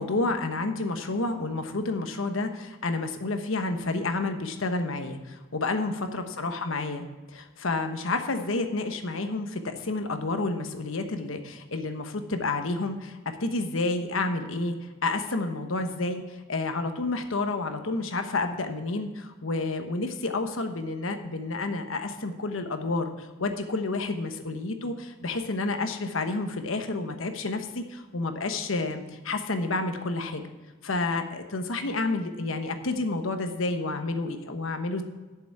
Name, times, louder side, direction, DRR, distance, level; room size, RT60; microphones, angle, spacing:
voice 1, 0.0-7.0 7.3-14.8 15.0-16.2 16.5-30.4 30.8-35.0, left 3 dB, 75° left, 7 dB, 1.1 m, -30 dB
8.3 x 6.9 x 8.6 m, 1.3 s
head